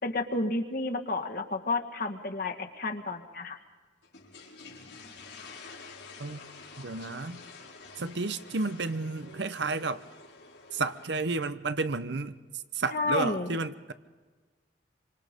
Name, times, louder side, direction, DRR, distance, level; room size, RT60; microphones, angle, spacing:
voice 1, 0.0-3.6 12.9-13.6, left 2 dB, 50° left, 1.8 m, -31 dB
sound 1, 4.0-11.1, left 4 dB, 85° left, 5.0 m, -49 dB
voice 2, 6.8-7.4 8.0-10.0 10.7-12.4 12.7-13.9, right 3 dB, 75° right, 0.9 m, -32 dB
26.5 x 25.5 x 5.3 m
head